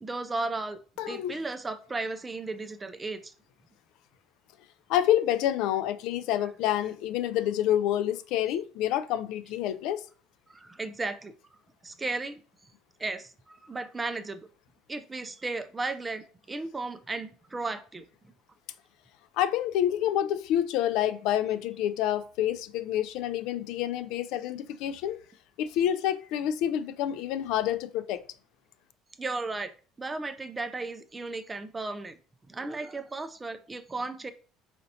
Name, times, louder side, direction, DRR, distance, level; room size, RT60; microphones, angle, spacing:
voice 1, 0.0-0.8 1.1-3.3 10.5-11.3 11.8-12.4 13.0-14.4 14.9-18.0 29.2-29.7 30.0-32.2 32.5-34.3, right 3 dB, 15° right, 0.4 m, -35 dB
voice 2, 1.0-1.4 4.9-10.0 19.4-25.2 25.6-28.2, left 11 dB, 70° left, 0.3 m, -28 dB
4.3 x 4.1 x 2.7 m
cardioid pair, 155°, 0 cm